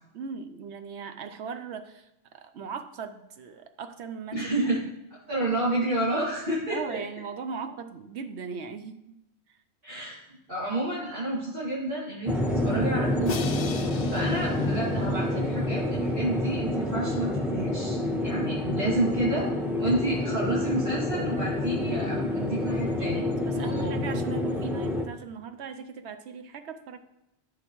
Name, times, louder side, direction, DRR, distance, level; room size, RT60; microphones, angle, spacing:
voice 1, 0.1-2.1 2.3-4.5 6.7-9.0 23.0-27.0, right 6 dB, 75° right, 9 dB, 1.0 m, -38 dB
voice 2, 4.3-4.8 5.3-7.0 9.8-10.2 10.5-13.4 14.1-19.5 19.8-23.2 23.5-23.9, right 1 dB, 50° right, -9 dB, 2.3 m, -30 dB
sound 1, 12.3-25.0, left 1 dB, ahead, 1.1 m, -28 dB
Crash cymbal, 13.3-15.5, left 7 dB, 50° left, 0.5 m, -38 dB
13.0 x 5.8 x 3.1 m, 0.88 s
omnidirectional pair, 1.2 m